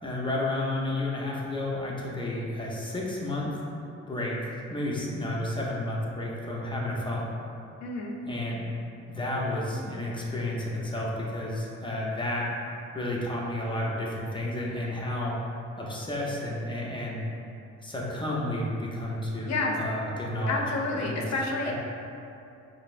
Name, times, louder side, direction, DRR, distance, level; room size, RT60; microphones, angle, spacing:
voice 1, 0.0-3.6 4.0-7.4 8.3-8.6 9.1-12.5 12.9-15.4 15.8-17.2 17.8-20.6 20.9-21.3 21.7-21.8, left 1 dB, 15° left, -4 dB, 0.7 m, -31 dB
voice 2, 7.8-8.2 19.5-19.7 20.5-21.7, left 2 dB, 60° left, -1 dB, 0.6 m, -29 dB
5.4 x 2.0 x 2.5 m, 2.7 s
cardioid pair, 90°, 30 cm